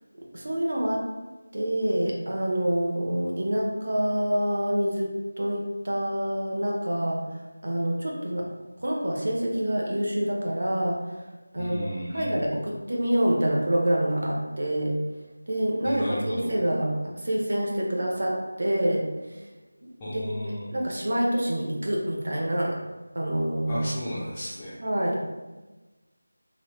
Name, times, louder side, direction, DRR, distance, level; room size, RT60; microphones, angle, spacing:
voice 1, 0.3-1.0 1.5-8.5 8.8-11.2 11.5-15.0 15.5-19.5 19.8-20.2 20.7-22.8 23.1-23.8 24.8-25.3, right 1 dB, 55° right, -2 dB, 0.7 m, -27 dB
voice 2, 11.5-12.5 15.8-16.5 20.0-20.7 23.7-24.8, equal, 10° left, -10 dB, 0.4 m, -34 dB
3.0 x 2.6 x 3.1 m, 1.2 s
figure-of-eight pair, 175°, 0 cm